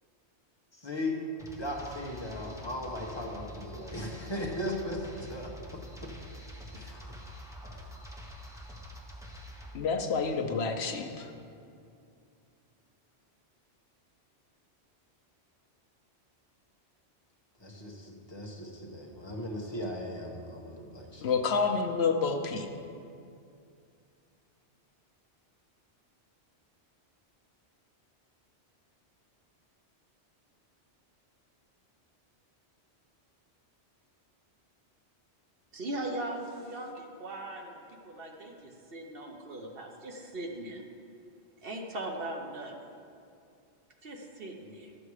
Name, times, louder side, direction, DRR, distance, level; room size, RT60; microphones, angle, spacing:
voice 1, 0.8-1.2 1.5-5.5 6.7-7.1 7.6-7.8 17.6-21.2, left 1 dB, 25° left, -1 dB, 1.3 m, -37 dB
sound 1, 1.4-9.7, equal, 5° right, 1.0 m, -46 dB
voice 2, 9.7-11.3 21.2-22.7, left 5 dB, 70° left, 4 dB, 1.0 m, -29 dB
voice 3, 35.7-37.8 38.0-40.8 41.6-42.7 44.0-44.9, right 1 dB, 60° right, 2 dB, 1.2 m, -39 dB
12.0 x 7.5 x 4.9 m, 2.5 s
omnidirectional pair, 1.1 m